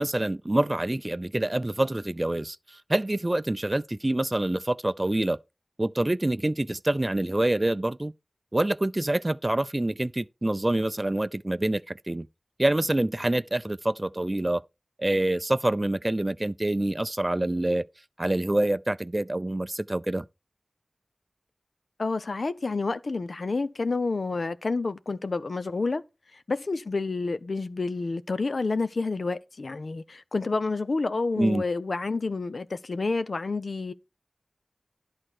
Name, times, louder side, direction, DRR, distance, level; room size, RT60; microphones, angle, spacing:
voice 1, 0.0-5.4 5.8-8.1 8.5-12.3 12.6-14.6 15.0-17.9 18.2-20.2 31.4-31.6, right 1 dB, 30° right, 0.4 m, -26 dB
voice 2, 22.0-26.0 26.3-33.9, left 3 dB, 75° left, 0.7 m, -29 dB
11.0 x 4.3 x 6.4 m
wide cardioid pair, 55°, 0 cm